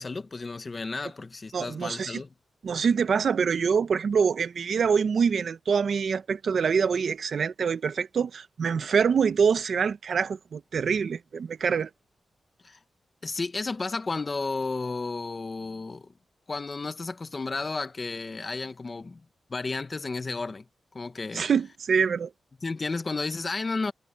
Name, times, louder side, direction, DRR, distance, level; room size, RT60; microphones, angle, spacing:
voice 1, 0.0-2.3 12.6-12.8 13.2-16.1 16.5-19.2 19.5-20.6 20.9-21.5 22.6-23.9, left 3 dB, 35° left, 1.2 m, -32 dB
voice 2, 1.5-2.2 2.6-11.9 21.3-22.3, right 6 dB, 65° right, 1.0 m, -25 dB
wide cardioid pair, 120°, 0 cm